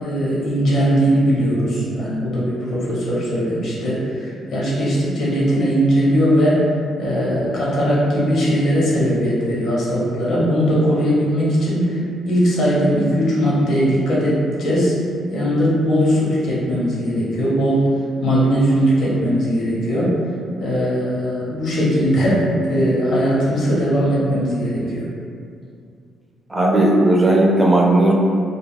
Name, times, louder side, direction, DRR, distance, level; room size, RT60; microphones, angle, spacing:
voice 1, 0.0-6.6 7.0-12.0 12.2-14.9 15.3-17.9 18.2-20.1 20.6-25.0, equal, 65° left, -7 dB, 0.9 m, -19 dB
voice 2, 26.5-28.1, right 1 dB, 15° right, -3 dB, 0.5 m, -15 dB
2.3 x 2.1 x 3.3 m, 2.4 s
cardioid pair, 90°, 0 cm